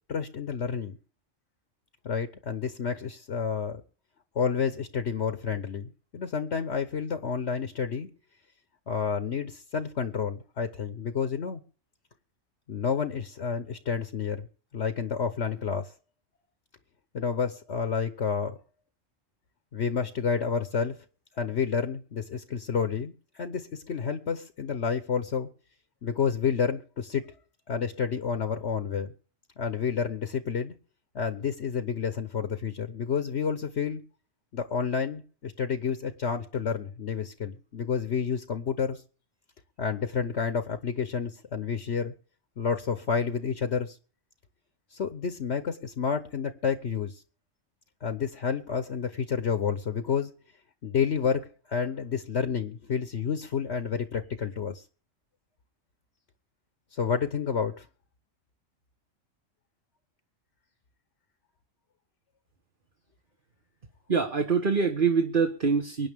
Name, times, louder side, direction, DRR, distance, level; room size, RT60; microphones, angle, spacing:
voice 1, 0.1-1.0 2.0-3.8 4.3-8.1 8.9-11.6 12.7-14.5 14.7-15.9 17.1-18.6 19.7-21.0 21.3-25.5 26.0-27.2 27.7-29.1 29.6-30.7 31.1-34.0 34.5-39.0 39.8-42.1 42.6-44.0 44.9-47.2 48.0-50.3 50.8-54.8 56.9-57.9, left 6 dB, 60° left, 10 dB, 1.3 m, -30 dB
voice 2, 64.1-66.1, right 5 dB, 40° right, 3 dB, 1.6 m, -24 dB
24.0 x 10.0 x 3.6 m, 0.38 s
omnidirectional pair, 1.4 m